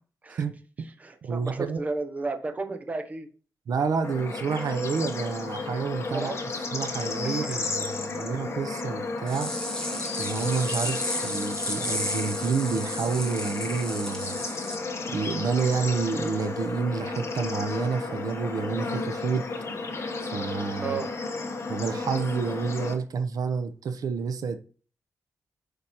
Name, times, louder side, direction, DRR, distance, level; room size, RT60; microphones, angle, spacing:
voice 1, 0.4-0.9 1.2-1.8 3.7-9.5 10.2-14.4 15.1-19.4 20.3-21.0 21.7-24.6, right 5 dB, 80° right, 0.8 m, -29 dB
voice 2, 1.0-3.3 6.1-6.4 7.2-8.4 20.8-21.1, right 3 dB, 25° right, 0.8 m, -34 dB
Bird / Insect / Frog, 4.0-22.9, left 3 dB, 45° left, 1.2 m, -33 dB
sound 1, 9.3-14.8, left 1 dB, 10° left, 1.6 m, -33 dB
8.3 x 5.1 x 3.0 m
wide cardioid pair, 165°, 6 cm